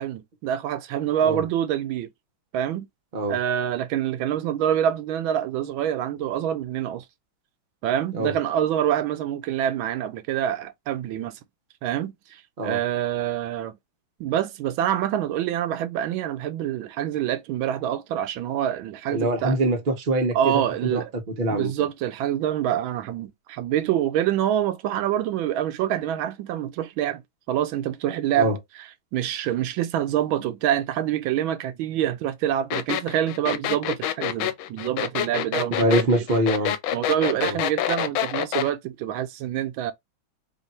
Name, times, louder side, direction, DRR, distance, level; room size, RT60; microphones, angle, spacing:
voice 1, 0.0-2.1 2.5-2.9 3.3-7.0 7.8-11.4 11.8-13.8 14.2-19.6 20.3-21.1 21.5-27.2 27.5-28.5 28.8-36.2 36.9-39.9, right 10 dB, 80° right, 1.4 m, -26 dB
voice 2, 19.1-20.6 20.9-21.7 28.4-28.6 35.8-36.7 37.4-37.6, right 1 dB, 45° right, 0.7 m, -24 dB
sound 1, 32.7-38.7, left 11 dB, 85° left, 1.4 m, -26 dB
3.5 x 2.5 x 4.1 m
omnidirectional pair, 2.2 m